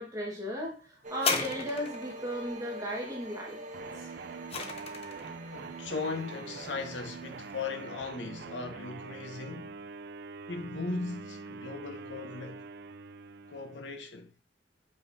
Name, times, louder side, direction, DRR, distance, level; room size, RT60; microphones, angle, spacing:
voice 1, 0.0-3.6, equal, 20° right, 1.6 m, -36 dB
sound 1, 1.0-7.9, right 1 dB, 45° right, 1.2 m, -45 dB
sound 2, 1.1-2.2 3.9-5.3 6.1-6.2, left 4 dB, 35° left, 0.8 m, -33 dB
sound 3, 3.7-14.0, right 4 dB, 65° right, 0.5 m, -44 dB
voice 2, 5.2-9.8 10.5-12.6 13.5-14.3, left 4 dB, 85° left, 0.9 m, -38 dB
7.0 x 5.5 x 2.7 m
head